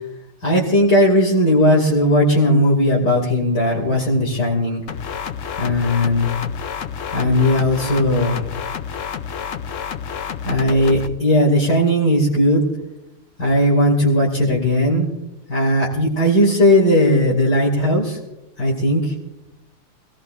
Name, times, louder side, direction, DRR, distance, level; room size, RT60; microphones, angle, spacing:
voice 1, 0.4-4.8 5.6-6.3 7.1-8.4 10.4-12.6 13.4-15.1 15.5-18.2 18.6-19.1, left 1 dB, 50° left, -4 dB, 3.2 m, -17 dB
sound 1, 4.9-11.1, left 7 dB, 85° left, 0.6 m, -29 dB
25.0 x 17.5 x 2.6 m, 0.89 s
omnidirectional pair, 2.3 m